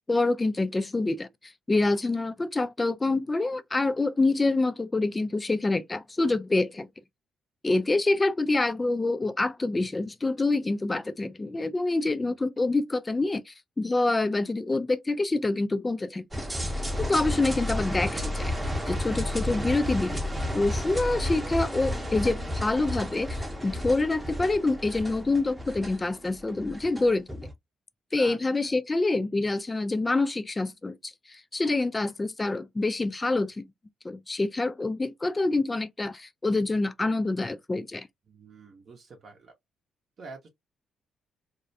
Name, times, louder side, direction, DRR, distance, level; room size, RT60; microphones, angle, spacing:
voice 1, 0.0-6.9 7.6-16.4 17.0-18.5 18.9-20.2 20.5-27.5 28.1-33.6 34.0-38.1, left 2 dB, 20° left, 0.3 m, -26 dB
sound 1, 16.3-27.5, equal, 15° right, 0.7 m, -32 dB
voice 2, 38.3-39.5 40.2-40.5, right 4 dB, 50° right, 0.7 m, -46 dB
2.3 x 2.1 x 2.5 m
cardioid pair, 90°, 0 cm